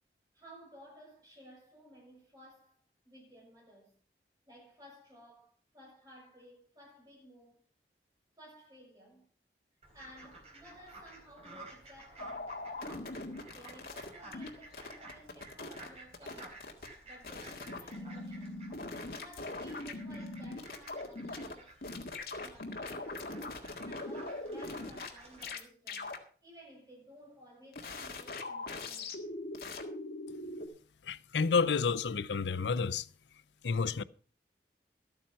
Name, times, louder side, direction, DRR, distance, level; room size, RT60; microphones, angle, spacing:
voice 1, 0.3-4.0 4.5-7.6 8.4-9.3 9.9-13.1 13.5-16.6 17.0-18.6 19.1-23.2 23.8-26.1 26.4-29.3, equal, 20° right, 6.8 m, -56 dB
Fowl, 9.8-25.5, right 2 dB, 35° right, 3.7 m, -54 dB
sound 1, 12.2-14.5 14.7-15.9 16.1-16.9 17.2-21.5 21.8-25.1 25.4-25.6 25.9-26.2 27.7-30.7, left 2 dB, 60° left, 1.8 m, -41 dB
voice 2, 31.0-33.1 33.6-34.0, left 5 dB, 90° left, 0.5 m, -30 dB
13.0 x 8.9 x 5.7 m
head